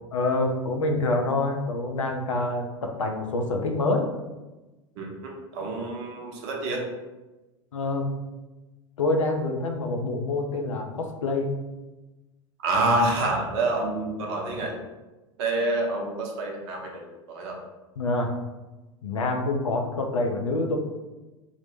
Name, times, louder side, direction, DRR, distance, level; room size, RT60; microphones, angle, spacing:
voice 1, 0.1-4.1 7.7-8.1 9.0-11.6 18.0-18.3 19.0-20.8, left 2 dB, 75° left, 3 dB, 0.4 m, -26 dB
voice 2, 5.0-6.9 12.6-14.8 15.4-17.6, right 2 dB, 55° right, 0 dB, 0.6 m, -27 dB
2.1 x 2.0 x 3.0 m, 1.1 s
figure-of-eight pair, 80°, 17 cm